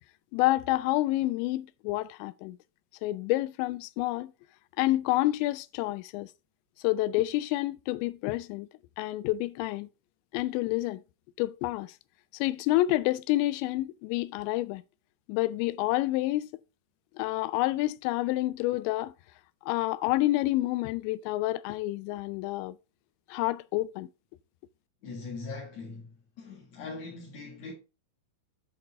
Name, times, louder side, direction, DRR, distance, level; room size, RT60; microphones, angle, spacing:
voice 1, 0.3-2.6 3.0-4.3 4.8-6.3 6.8-8.7 9.0-9.9 10.3-11.0 11.4-11.9 12.4-14.8 15.3-16.5 17.2-19.1 19.7-22.8 23.3-24.1, left 17 dB, 90° left, 2.8 m, -28 dB
voice 2, 25.0-27.7, left 3 dB, 50° left, 2.4 m, -41 dB
8.2 x 5.2 x 4.6 m
omnidirectional pair, 5.1 m